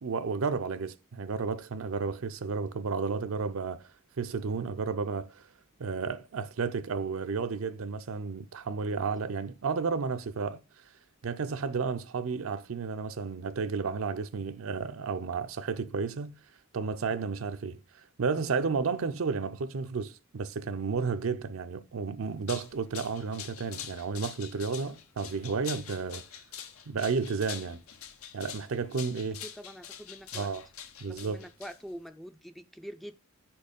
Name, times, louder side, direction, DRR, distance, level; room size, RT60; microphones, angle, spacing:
voice 1, 0.0-3.9 4.2-5.4 5.8-10.6 11.2-16.3 16.7-17.8 18.2-26.2 26.9-27.8 28.3-29.4 30.3-30.6 31.0-31.4, right 5 dB, 75° right, 0.5 m, -32 dB
sound 1, 22.2-32.1, left 9 dB, 90° left, 0.8 m, -45 dB
voice 2, 29.4-30.5 31.1-33.1, equal, ahead, 0.3 m, -45 dB
5.4 x 4.4 x 5.2 m
head